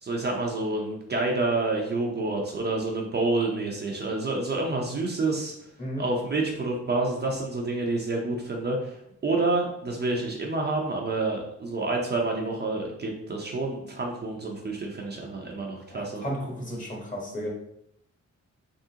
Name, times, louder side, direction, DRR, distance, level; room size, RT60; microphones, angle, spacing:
voice 1, 0.0-5.5 6.0-16.2, right 2 dB, 35° right, 0 dB, 0.6 m, -28 dB
voice 2, 15.9-17.5, equal, 25° left, -2 dB, 1.2 m, -33 dB
3.7 x 3.5 x 2.8 m, 0.75 s
wide cardioid pair, 120°, 30 cm